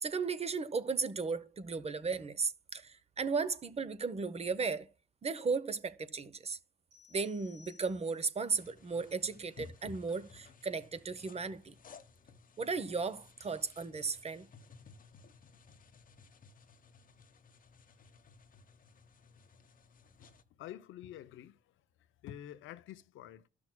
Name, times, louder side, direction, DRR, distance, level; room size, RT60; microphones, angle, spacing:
voice 1, 0.0-4.9 5.2-6.6 7.1-11.8 12.6-14.5, right 4 dB, 30° right, 0.8 m, -35 dB
sound 1, 6.9-8.4, left 7 dB, 65° right, 3.9 m, -61 dB
sound 2, 8.5-20.4, left 4 dB, 45° left, 0.9 m, -57 dB
voice 2, 20.2-21.8 22.2-23.5, left 12 dB, 80° left, 0.6 m, -48 dB
13.0 x 6.1 x 2.2 m
cardioid pair, 90°, 20 cm